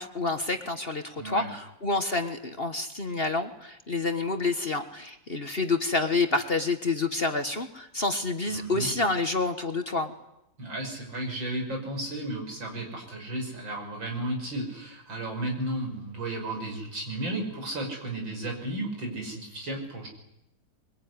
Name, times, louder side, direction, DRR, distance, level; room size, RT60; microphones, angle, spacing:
voice 1, 0.0-10.1, left 3 dB, 35° left, 7 dB, 1.5 m, -28 dB
voice 2, 1.2-1.5 8.5-8.9 10.6-20.1, right 1 dB, 80° right, 2 dB, 6.7 m, -33 dB
23.5 x 22.5 x 9.7 m, 0.85 s
omnidirectional pair, 2.0 m